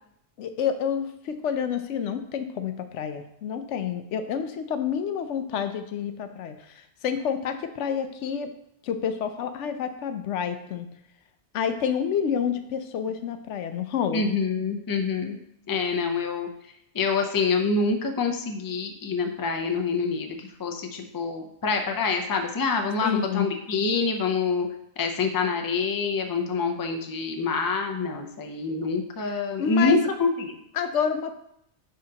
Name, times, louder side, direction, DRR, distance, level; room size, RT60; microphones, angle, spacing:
voice 1, 0.4-6.5 7.0-8.5 8.8-10.9 11.5-14.3 23.0-23.5 29.3-30.0 30.7-31.3, left 7 dB, 85° left, 8 dB, 0.9 m, -28 dB
voice 2, 14.1-15.4 15.7-16.5 16.9-24.7 25.0-30.6, left 4 dB, 25° left, 4 dB, 0.4 m, -26 dB
10.0 x 3.8 x 2.8 m, 0.75 s
omnidirectional pair, 1.2 m